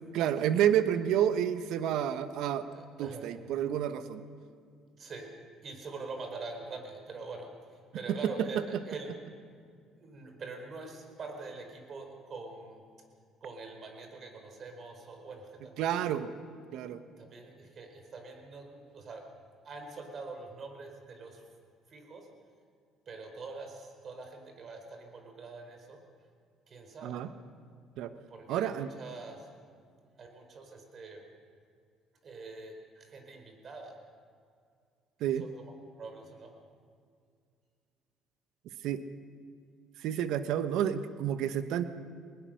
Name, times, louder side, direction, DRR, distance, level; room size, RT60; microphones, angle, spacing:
voice 1, 0.1-2.6 3.0-4.2 8.1-8.6 15.8-16.3 16.7-17.0 27.0-27.3 28.0-28.1 28.5-28.9 35.2-35.4 38.8-39.0 40.0-41.8, right 10 dB, 75° right, 11 dB, 1.1 m, -29 dB
voice 2, 2.7-3.3 4.9-5.3 5.6-9.3 10.0-12.8 13.4-16.0 17.2-19.3 19.6-21.5 21.9-22.3 23.1-26.0 26.7-27.2 28.3-29.5 30.2-31.2 32.2-34.0 35.3-35.7 36.0-36.5, right 3 dB, 50° right, 5 dB, 4.5 m, -44 dB
20.5 x 19.5 x 6.5 m, 2.2 s
supercardioid pair, 70°, 0 cm